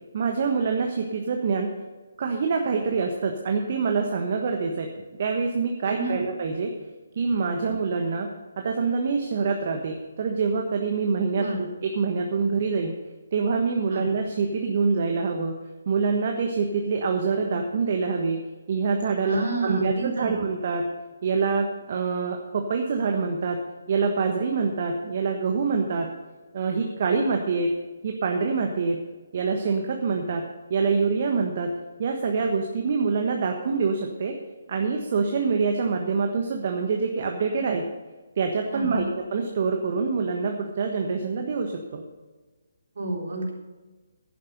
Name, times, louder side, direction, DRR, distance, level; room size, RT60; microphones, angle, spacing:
voice 1, 0.1-1.7 2.2-4.9 5.2-6.7 7.2-8.3 8.6-13.0 13.3-15.6 15.9-18.4 18.7-20.8 21.2-23.6 23.9-26.1 26.5-27.7 28.0-29.0 29.3-31.7 32.0-34.3 34.7-37.8 38.4-39.0 39.3-42.0, right 4 dB, 45° right, 3 dB, 1.3 m, -25 dB
voice 2, 5.8-6.3 7.6-7.7 11.4-11.7 13.9-14.1 19.2-20.4 38.7-39.1 43.0-43.5, right 1 dB, 60° right, -2 dB, 3.8 m, -29 dB
11.0 x 10.0 x 5.3 m, 1.3 s
figure-of-eight pair, 145°, 0 cm